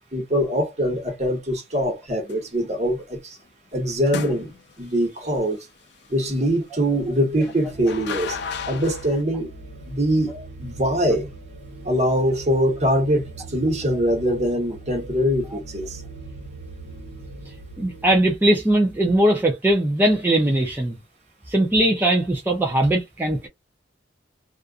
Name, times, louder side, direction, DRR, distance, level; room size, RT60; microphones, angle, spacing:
voice 1, 0.1-3.4 3.7-4.5 4.8-5.6 6.1-8.4 8.7-9.5 9.9-10.3 10.6-11.3 11.8-16.0, equal, 40° right, 1.1 m, -23 dB
sound 1, 2.3-2.6 4.1-4.9 7.4-9.2, left 6 dB, 65° left, 0.5 m, -33 dB
sound 2, 7.7-18.4, right 2 dB, 75° right, 1.2 m, -40 dB
voice 2, 17.8-21.0 21.5-23.5, right 1 dB, 10° right, 0.4 m, -20 dB
2.4 x 2.3 x 2.4 m
head